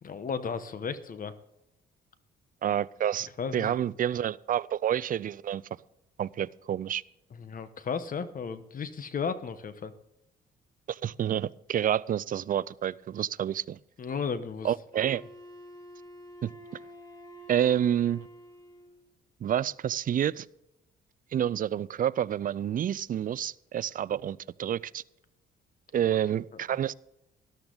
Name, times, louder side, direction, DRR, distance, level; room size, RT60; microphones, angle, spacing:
voice 1, 0.0-1.3 3.4-3.8 7.3-9.9 14.0-14.7, left 6 dB, 45° left, 12 dB, 1.1 m, -34 dB
voice 2, 2.6-5.6 6.2-7.0 10.9-13.8 14.6-15.2 16.4-16.5 17.5-18.3 19.4-20.5 21.3-25.0 25.9-26.9, right 10 dB, 45° right, 20 dB, 0.4 m, -29 dB
Wind instrument woodwind instrument, 14.9-19.1, equal, 20° left, 2.0 m, -48 dB
13.0 x 12.0 x 3.9 m, 0.84 s
cardioid pair, 90°, 20 cm